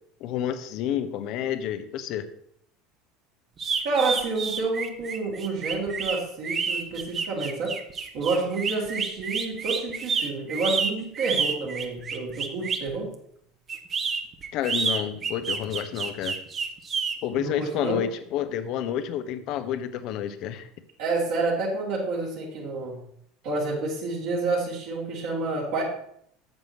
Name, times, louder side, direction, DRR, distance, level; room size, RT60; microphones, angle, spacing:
voice 1, 0.2-2.2 14.5-16.4 17.2-20.7, left 10 dB, 55° left, 11 dB, 0.8 m, -29 dB
sound 1, 3.6-12.9 13.7-17.1, right 5 dB, 35° right, 1.1 m, -29 dB
voice 2, 3.8-7.7 8.1-13.1 17.4-18.0 21.0-23.0 23.4-25.8, right 3 dB, 60° right, -4 dB, 2.8 m, -29 dB
10.5 x 7.7 x 3.1 m, 0.68 s
figure-of-eight pair, 70°, 0 cm